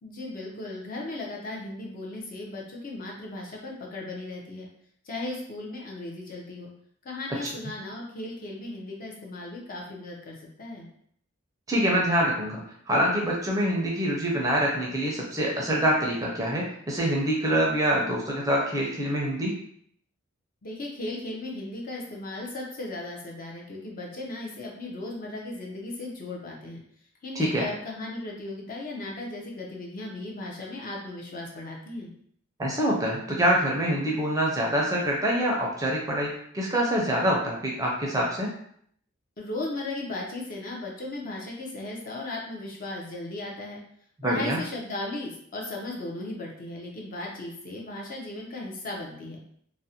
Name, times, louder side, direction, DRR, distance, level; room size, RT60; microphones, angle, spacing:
voice 1, 0.0-4.7 5.0-6.7 7.0-10.9 20.6-26.8 27.2-32.1 39.4-43.8 44.2-49.4, left 2 dB, 40° left, -1 dB, 0.5 m, -36 dB
voice 2, 11.7-19.5 27.4-27.7 32.6-38.5 44.2-44.6, equal, 15° right, -2 dB, 0.4 m, -25 dB
2.5 x 2.0 x 2.7 m, 0.65 s
head